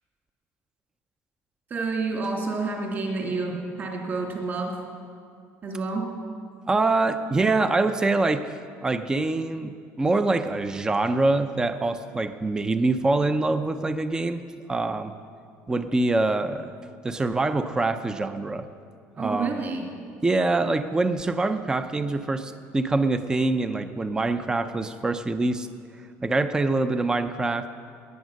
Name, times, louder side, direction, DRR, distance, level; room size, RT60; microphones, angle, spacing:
voice 1, 1.7-4.8 5.6-6.1 19.2-19.9, right 3 dB, 35° right, 0 dB, 2.8 m, -29 dB
voice 2, 6.7-8.5 8.8-14.4 14.7-15.1 15.7-16.7 17.0-18.7 19.2-19.6 20.2-25.7 26.2-27.7, right 2 dB, 15° right, 10 dB, 0.5 m, -24 dB
19.0 x 9.1 x 6.4 m, 2.3 s
cardioid pair, 140°, 6 cm